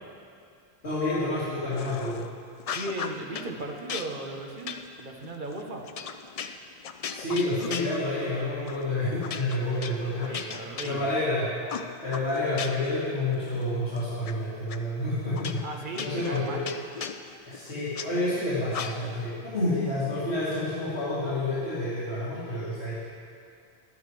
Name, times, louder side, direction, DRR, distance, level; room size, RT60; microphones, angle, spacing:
voice 1, 0.8-2.2 7.1-11.5 12.0-16.7 17.5-22.9, left 2 dB, 85° left, -14 dB, 3.1 m, -29 dB
sound 1, 1.8-2.3 2.6-3.5 3.9-8.4 8.7-8.9 9.2-11.3 11.7-13.0 13.3-14.3 14.7-14.8 15.4-18.1 18.7-19.3, left 6 dB, 55° left, 0.4 m, -37 dB
voice 2, 2.7-5.8 10.2-11.0 15.6-16.7, right 2 dB, 50° right, 1 dB, 1.2 m, -36 dB
12.5 x 12.0 x 3.3 m, 2.4 s
omnidirectional pair, 1.1 m